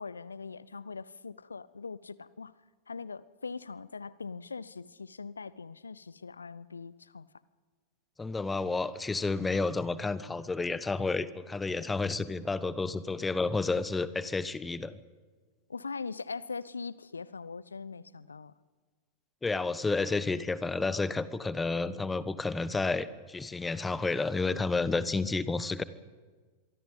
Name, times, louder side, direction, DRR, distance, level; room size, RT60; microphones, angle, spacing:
voice 1, 0.0-2.5 2.9-7.3 15.7-18.5, left 4 dB, 75° left, 20 dB, 0.7 m, -41 dB
voice 2, 8.2-15.0 19.4-25.8, left 3 dB, 10° left, 16 dB, 1.1 m, -31 dB
26.0 x 23.5 x 5.4 m, 1.4 s
figure-of-eight pair, 90°, 0 cm